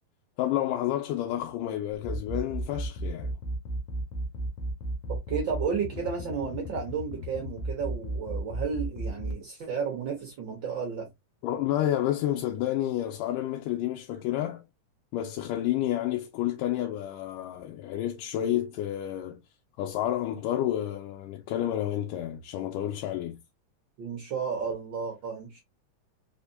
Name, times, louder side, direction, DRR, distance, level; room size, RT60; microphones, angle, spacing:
voice 1, 0.4-3.4 11.4-14.6 15.1-19.4 19.8-23.4, left 12 dB, 90° left, 2.2 m, -30 dB
sound 1, 2.0-9.3, right 1 dB, 65° left, 1.5 m, -33 dB
voice 2, 5.3-11.1 24.0-25.6, right 6 dB, 75° right, 1.0 m, -32 dB
5.0 x 3.5 x 2.6 m
omnidirectional pair, 3.7 m